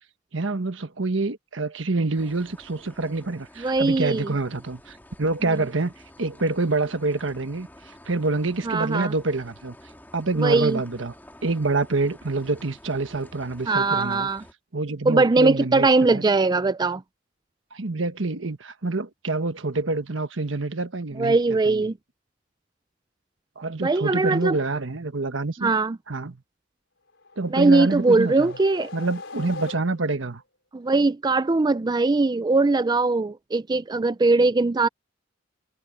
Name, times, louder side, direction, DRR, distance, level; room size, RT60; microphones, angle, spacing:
voice 1, 0.3-5.9 6.2-9.8 10.1-11.1 11.4-14.3 14.7-16.2 17.7-21.8 23.6-25.7 26.1-26.4 27.4-28.6 28.9-30.4, right 3 dB, 80° right, 1.3 m, -27 dB
sound 1, 2.1-14.5, left 1 dB, 10° left, 2.7 m, -49 dB
voice 2, 3.6-4.3 8.7-9.1 10.4-10.8 13.7-14.4 15.1-17.0 21.2-21.9 23.8-24.6 25.6-26.0 27.5-28.9 30.7-34.9, right 3 dB, 20° right, 0.4 m, -21 dB
sound 2, 27.2-30.3, left 3 dB, 75° left, 4.9 m, -41 dB
head